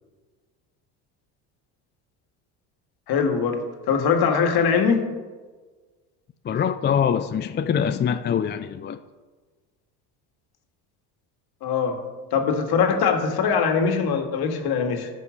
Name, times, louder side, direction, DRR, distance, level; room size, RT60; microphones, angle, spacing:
voice 1, 3.1-3.6 3.9-5.0 11.6-11.9 12.3-15.1, left 6 dB, 60° left, 5 dB, 2.0 m, -22 dB
voice 2, 6.4-9.0, left 8 dB, 25° left, 10 dB, 0.5 m, -24 dB
12.5 x 5.6 x 6.5 m, 1.4 s
supercardioid pair, 85°, 44 cm